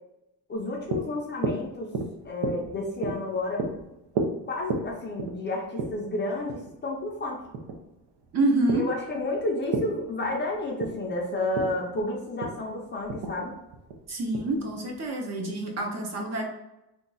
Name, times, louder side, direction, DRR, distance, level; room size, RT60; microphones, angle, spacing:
voice 1, 0.5-1.9 2.2-3.6 4.5-7.4 8.7-13.6, left 2 dB, 30° left, -1 dB, 0.4 m, -31 dB
sound 1, 0.5-15.1, right 3 dB, 85° right, 0.7 m, -35 dB
voice 2, 8.3-8.8 14.1-16.5, right 2 dB, 40° right, 1 dB, 0.6 m, -27 dB
2.8 x 2.2 x 3.8 m, 0.89 s
cardioid pair, 170°, 40 cm